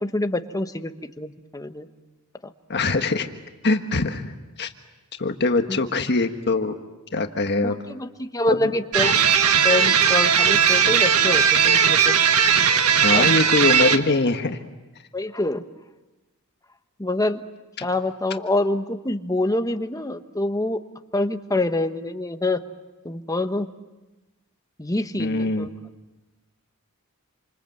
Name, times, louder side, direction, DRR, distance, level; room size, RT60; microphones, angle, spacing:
voice 1, 0.0-1.9 2.4-2.5 5.7-5.8 7.6-9.2 9.6-12.1 13.1-13.3 15.1-15.6 17.0-17.4 17.8-20.8 21.1-22.6 23.0-23.7 24.8-25.7, left 2 dB, 15° left, 8 dB, 1.2 m, -26 dB
voice 2, 2.7-3.3 3.6-4.7 5.2-6.7 7.1-7.8 13.0-14.6 25.2-25.7, left 3 dB, 50° left, 6 dB, 1.5 m, -22 dB
sound 1, 8.9-14.0, right 7 dB, 75° right, 1.6 m, -18 dB
28.5 x 27.0 x 7.8 m, 1.1 s
head